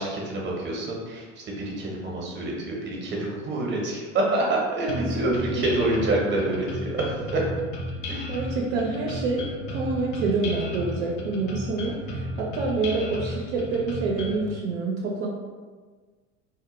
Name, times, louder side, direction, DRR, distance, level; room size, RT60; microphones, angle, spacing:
voice 1, 0.0-7.4 8.1-8.3, right 2 dB, 30° right, -2 dB, 0.8 m, -27 dB
voice 2, 4.8-5.7 8.3-15.3, right 3 dB, 65° right, -2 dB, 0.5 m, -27 dB
sound 1, 4.9-14.5, left 1 dB, 60° left, 0.7 m, -33 dB
2.2 x 2.1 x 3.0 m, 1.4 s
hypercardioid pair, 85°, 39 cm